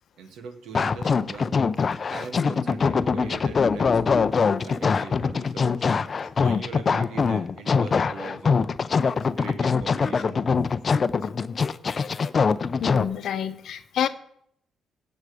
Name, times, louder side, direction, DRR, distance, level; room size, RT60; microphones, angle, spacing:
voice 1, 0.2-1.6 2.1-4.3 4.6-5.8 6.4-8.7 9.4-10.4, right 5 dB, 75° right, 9 dB, 1.2 m, -41 dB
sound 1, 0.7-13.0, left 5 dB, 45° left, 0.5 m, -23 dB
voice 2, 12.8-14.1, left 9 dB, 70° left, 11 dB, 0.8 m, -28 dB
16.5 x 6.4 x 4.9 m, 0.73 s
supercardioid pair, 55°, 0 cm